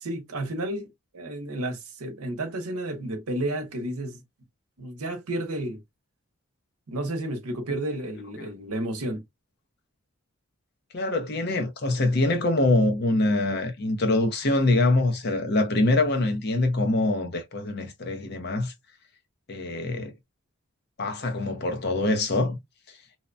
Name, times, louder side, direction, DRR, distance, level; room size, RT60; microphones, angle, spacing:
voice 1, 0.0-0.9 1.1-4.2 4.8-5.8 6.9-9.2, right 1 dB, 85° right, 0.8 m, -31 dB
voice 2, 10.9-18.7 19.5-20.1 21.0-22.6, left 2 dB, 45° left, 0.6 m, -24 dB
2.8 x 2.1 x 2.5 m
head